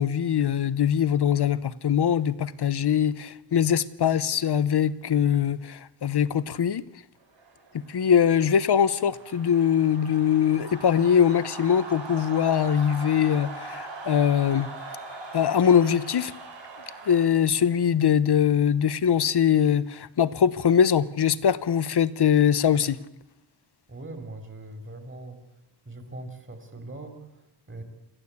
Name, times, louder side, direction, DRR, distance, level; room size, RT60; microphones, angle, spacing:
voice 1, 0.0-6.8 7.9-14.7 15.3-16.3 17.1-23.0, left 8 dB, 60° left, 0.9 m, -22 dB
sound 1, 7.4-17.3, right 3 dB, 75° right, 4.3 m, -41 dB
voice 2, 23.9-25.4 25.9-27.8, right 2 dB, 25° right, 3.7 m, -41 dB
28.0 x 14.0 x 8.5 m
wide cardioid pair, 150°, 44 cm